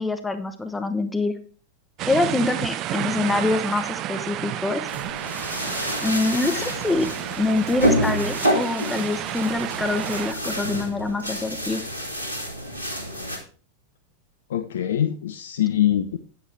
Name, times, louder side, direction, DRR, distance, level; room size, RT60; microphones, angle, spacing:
voice 1, 0.0-1.3 2.0-4.9 6.0-7.1 7.4-11.8, left 2 dB, 10° left, 8 dB, 0.9 m, -25 dB
sound 1, 2.0-10.3, right 13 dB, 35° right, 0.5 m, -31 dB
sound 2, 4.9-13.4, equal, 85° right, 2.3 m, -28 dB
voice 2, 14.5-16.2, left 11 dB, 60° left, 10 dB, 0.6 m, -23 dB
9.6 x 9.3 x 3.4 m, 0.41 s
figure-of-eight pair, 90°, 0 cm